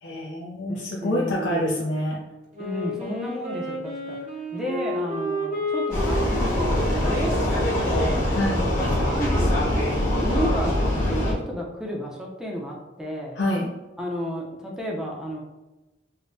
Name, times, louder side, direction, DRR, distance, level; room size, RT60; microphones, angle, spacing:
voice 1, 0.0-2.2 8.3-8.7 13.4-13.7, left 1 dB, 70° left, -4 dB, 0.5 m, -26 dB
voice 2, 0.7-1.8 2.6-8.3 9.0-9.9 10.2-13.4 14.0-15.4, equal, 5° right, -2 dB, 0.5 m, -32 dB
Wind instrument woodwind instrument, 2.5-9.1, equal, 40° right, 0.9 m, -32 dB
Vehicle, 5.9-11.3, left 1 dB, 45° left, 1.1 m, -23 dB
5.2 x 2.1 x 2.6 m, 1.1 s
head